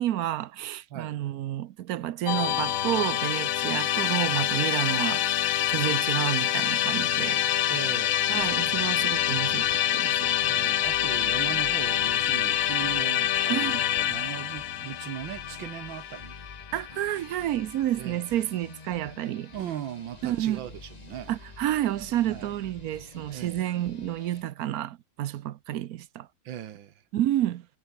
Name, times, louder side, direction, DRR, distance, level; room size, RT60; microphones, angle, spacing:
voice 1, 0.0-5.2 5.7-7.4 8.3-10.3 13.5-13.8 16.7-19.5 20.2-20.7 21.3-26.3 27.1-27.7, right 13 dB, 65° right, 1.0 m, -30 dB
Musical instrument, 2.3-17.4, left 12 dB, 60° left, 0.9 m, -26 dB
voice 2, 7.7-8.4 10.4-13.8 14.1-16.3 18.0-18.2 19.5-21.3 22.3-22.5 23.3-23.7 26.5-26.9, right 11 dB, 85° right, 1.8 m, -38 dB
sound 1, 8.3-24.4, left 3 dB, 25° left, 1.5 m, -48 dB
omnidirectional pair, 2.0 m